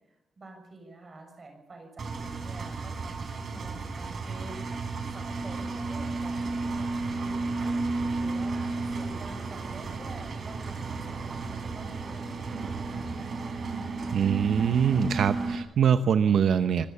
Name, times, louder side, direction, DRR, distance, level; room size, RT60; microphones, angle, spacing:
voice 1, 0.4-4.6 5.0-13.4, right 2 dB, 30° right, 4 dB, 6.8 m, -47 dB
Engine, 2.0-15.6, right 3 dB, 45° right, 3.8 m, -33 dB
voice 2, 14.1-16.9, right 8 dB, 70° right, 10 dB, 0.8 m, -23 dB
26.0 x 14.0 x 8.5 m, 0.85 s
wide cardioid pair, 180°, 0 cm